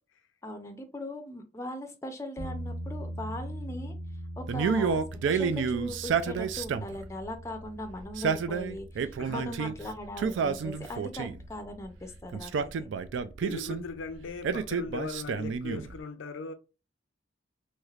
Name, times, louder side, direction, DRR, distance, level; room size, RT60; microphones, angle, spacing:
voice 1, 0.4-3.9 4.4-5.0 5.3-12.9, left 1 dB, 15° left, 0.4 m, -39 dB
sound 1, 2.4-14.7, equal, 45° right, 1.1 m, -43 dB
Male speech man speaking, 4.5-7.0 8.0-9.7 10.2-11.5 12.3-13.8 14.4-15.9, right 6 dB, 75° right, 0.3 m, -30 dB
voice 2, 9.2-10.0 10.8-10.9 13.4-16.5, left 4 dB, 90° left, 0.5 m, -39 dB
3.2 x 3.1 x 2.4 m
head